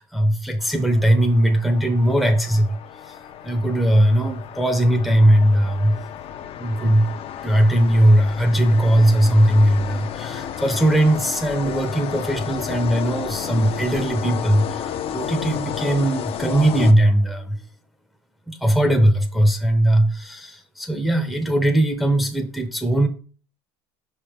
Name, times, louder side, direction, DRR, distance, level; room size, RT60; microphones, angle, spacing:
voice 1, 0.0-2.8 3.0-3.2 3.4-6.0 6.6-7.1 7.4-17.6 18.5-23.1, right 1 dB, ahead, 5 dB, 0.7 m, -19 dB
sound 1, 0.6-17.4, left 9 dB, 45° left, 0.7 m, -32 dB
5.3 x 3.6 x 5.0 m, 0.39 s
supercardioid pair, 105°, 14 cm